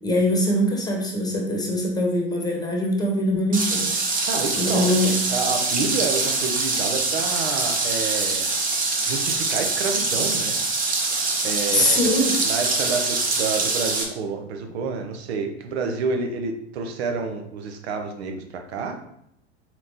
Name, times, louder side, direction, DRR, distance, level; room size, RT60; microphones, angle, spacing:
voice 1, 0.0-3.9 4.5-5.2 11.7-12.4, left 1 dB, 10° left, 0 dB, 1.1 m, -22 dB
sound 1, 3.5-14.0, right 3 dB, 25° right, 1.0 m, -24 dB
voice 2, 4.2-5.0 5.3-8.5 9.0-10.6 11.4-19.0, right 4 dB, 70° right, 5 dB, 0.8 m, -29 dB
4.4 x 4.0 x 2.8 m, 0.74 s
hypercardioid pair, 85°, 34 cm